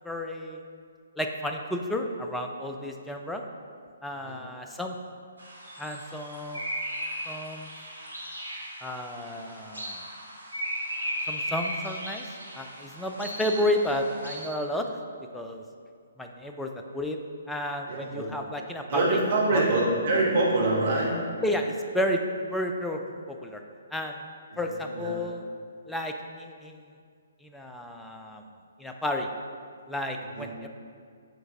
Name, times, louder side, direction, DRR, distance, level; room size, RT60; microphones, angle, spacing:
voice 1, 0.0-0.6 1.2-3.4 4.0-5.0 5.8-6.8 7.3-7.7 8.8-10.1 11.3-12.2 12.5-14.9 15.3-15.6 16.2-17.2 17.5-19.2 19.5-19.7 21.4-22.2 22.5-23.0 23.3-23.6 23.9-24.2 24.6-25.4 25.9-26.8 27.4-28.4 28.8-29.3 29.9-30.7, left 1 dB, 5° left, 3 dB, 0.4 m, -31 dB
sound 1, 5.4-14.5, equal, 85° right, 1.5 m, -36 dB
voice 2, 17.9-18.3 18.9-21.1 24.5-24.6 24.9-25.2 30.3-30.5, right 2 dB, 45° right, -4 dB, 1.5 m, -25 dB
6.5 x 4.4 x 3.6 m, 2.1 s
figure-of-eight pair, 130°, 0 cm